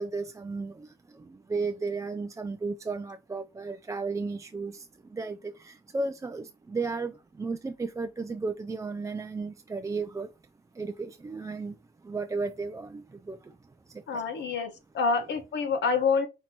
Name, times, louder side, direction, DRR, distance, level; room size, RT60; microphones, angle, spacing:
voice 1, 0.0-10.3 10.8-11.7 12.0-13.5 14.1-14.2 15.2-15.3, right 4 dB, 15° right, 0.3 m, -34 dB
voice 2, 14.1-16.3, left 5 dB, 65° left, 1.1 m, -27 dB
5.7 x 2.7 x 2.9 m
cardioid pair, 90°, 20 cm